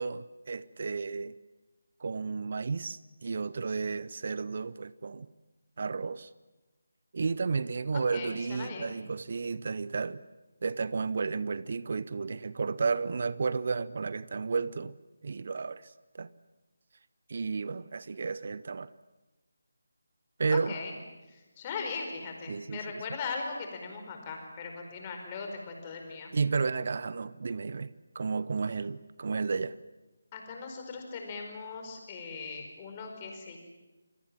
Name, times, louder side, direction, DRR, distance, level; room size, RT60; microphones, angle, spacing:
voice 1, 0.0-1.3 2.0-5.3 5.8-6.3 7.1-10.2 10.6-15.0 15.2-16.3 17.3-18.9 20.4-20.7 22.5-23.0 26.3-29.8, right 4 dB, 45° right, 0.8 m, -32 dB
voice 2, 7.9-9.0 20.5-20.9 21.3-26.3 30.3-33.6, left 4 dB, 25° left, 4.9 m, -39 dB
28.0 x 22.5 x 7.6 m
figure-of-eight pair, 155°, 0 cm